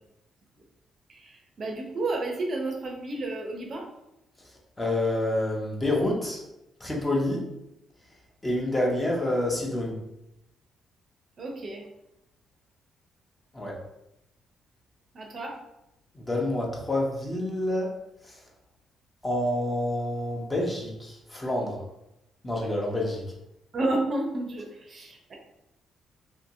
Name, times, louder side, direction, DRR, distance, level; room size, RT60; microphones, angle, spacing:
voice 1, 1.1-3.9 11.4-11.8 15.1-15.6 23.7-25.4, right 2 dB, 50° right, 1 dB, 0.6 m, -31 dB
voice 2, 4.8-6.4 6.8-7.5 8.4-10.0 13.5-13.8 16.1-17.9 18.2-18.3 19.2-21.8 22.4-23.2, left 1 dB, 20° left, -2 dB, 0.7 m, -28 dB
2.7 x 2.7 x 2.6 m, 0.88 s
cardioid pair, 90°, 0 cm